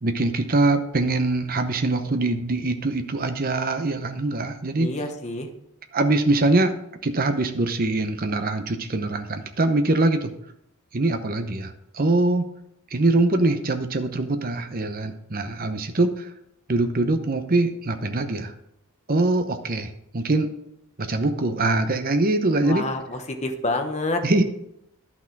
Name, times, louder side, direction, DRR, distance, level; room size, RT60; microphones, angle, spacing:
voice 1, 0.0-4.9 5.9-6.7 7.0-10.3 10.9-12.4 12.9-16.3 16.7-18.5 19.1-20.5 21.0-22.9 24.2-24.4, right 2 dB, 40° right, 7 dB, 0.8 m, -23 dB
voice 2, 4.8-5.5 22.6-24.2, left 2 dB, 30° left, 5 dB, 1.0 m, -28 dB
11.0 x 6.0 x 4.6 m, 0.80 s
head